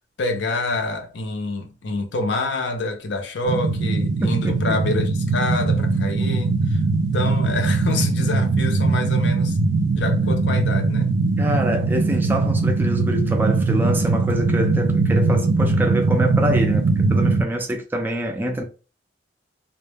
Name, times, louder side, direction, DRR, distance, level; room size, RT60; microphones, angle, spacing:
voice 1, 0.2-6.8 7.1-9.6 9.9-11.1, left 2 dB, 70° left, 0.5 m, -27 dB
sound 1, 3.4-17.4, right 3 dB, 85° right, 0.4 m, -20 dB
voice 2, 4.2-4.8 11.4-18.6, equal, 10° right, 0.3 m, -25 dB
2.1 x 2.1 x 3.2 m
head